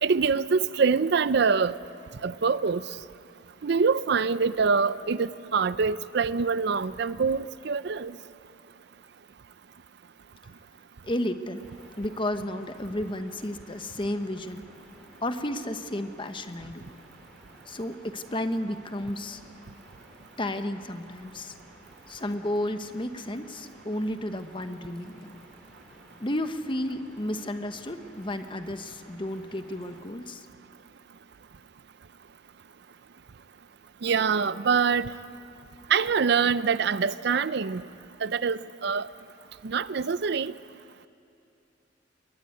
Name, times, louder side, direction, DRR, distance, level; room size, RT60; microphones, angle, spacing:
voice 1, 0.0-1.8 2.2-2.8 3.6-8.2 34.0-35.1 35.9-37.9 38.2-39.1 39.6-40.5, right 5 dB, 60° right, 16 dB, 0.5 m, -25 dB
voice 2, 11.0-11.6 12.0-14.6 15.2-16.8 17.7-19.4 20.4-21.5 22.1-25.4 26.2-30.5, left 1 dB, 25° left, 9 dB, 1.1 m, -32 dB
sound 1, 11.6-30.0, equal, 5° left, 4.6 m, -55 dB
22.0 x 19.5 x 9.6 m, 2.8 s
head